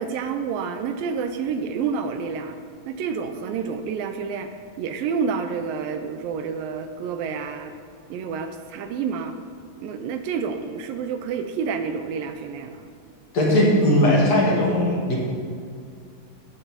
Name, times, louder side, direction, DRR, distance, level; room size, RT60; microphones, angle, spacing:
voice 1, 0.0-2.6 2.9-4.5 4.8-7.7 8.1-9.4 9.8-12.9, right 6 dB, 80° right, 7 dB, 2.3 m, -29 dB
voice 2, 13.3-15.2, left 1 dB, 50° left, -4 dB, 3.0 m, -18 dB
14.0 x 8.9 x 4.4 m, 2.3 s
omnidirectional pair, 4.1 m